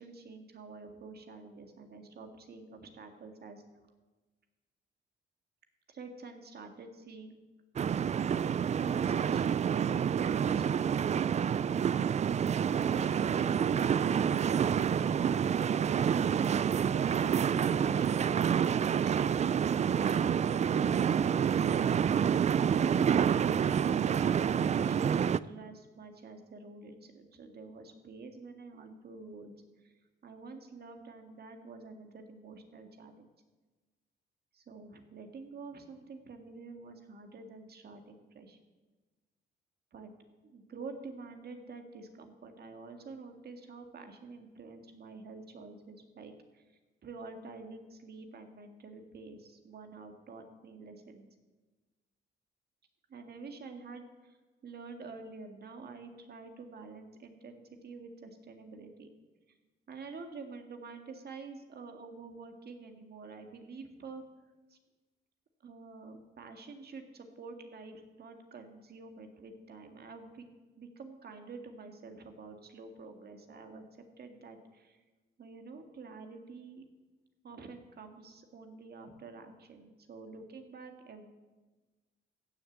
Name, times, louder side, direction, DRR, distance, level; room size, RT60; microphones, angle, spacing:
voice 1, 0.0-3.6 5.9-7.4 8.7-11.1 22.7-29.9 30.2-33.3 34.5-38.6 39.9-40.1 40.4-46.6 47.0-51.2 53.1-54.4 54.6-59.1 59.9-64.2 64.7-64.8 65.6-70.5 70.8-75.0 75.4-76.8 77.4-81.3, right 4 dB, 55° right, 5 dB, 2.0 m, -48 dB
sound 1, 7.8-25.4, right 8 dB, 35° right, 0.4 m, -28 dB
15.5 x 6.7 x 8.0 m, 1.2 s
cardioid pair, 90°, 20 cm